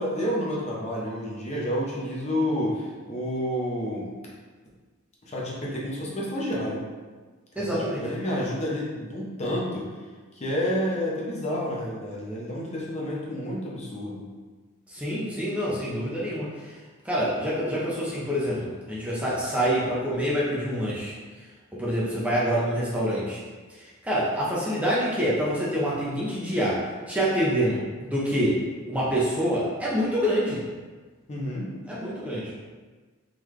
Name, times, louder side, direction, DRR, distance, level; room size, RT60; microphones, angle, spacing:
voice 1, 0.0-4.1 5.3-6.8 7.6-9.9 10.3-14.2 31.3-31.7, equal, 30° left, -5 dB, 0.8 m, -29 dB
voice 2, 7.6-8.1 14.9-16.8 17.0-21.1 21.7-23.4 23.7-26.8 27.1-28.6 28.9-30.6 31.9-32.5, equal, 5° right, -7 dB, 0.7 m, -26 dB
3.8 x 3.3 x 3.2 m, 1.4 s
head